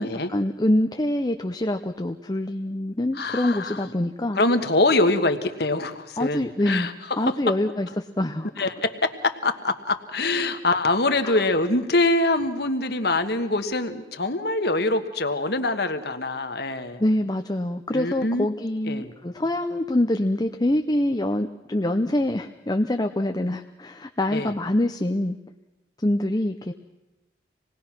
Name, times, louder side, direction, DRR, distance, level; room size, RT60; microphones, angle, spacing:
voice 1, 0.0-4.4 6.2-8.5 11.2-11.4 17.0-25.4 26.0-26.7, left 1 dB, 20° left, 5 dB, 0.7 m, -25 dB
voice 2, 3.1-3.8 4.3-6.9 7.2-7.4 8.6-17.0 17.9-18.5 18.9-19.1 24.3-24.5, left 2 dB, 60° left, 8 dB, 1.5 m, -24 dB
27.0 x 19.5 x 6.0 m, 1.0 s
head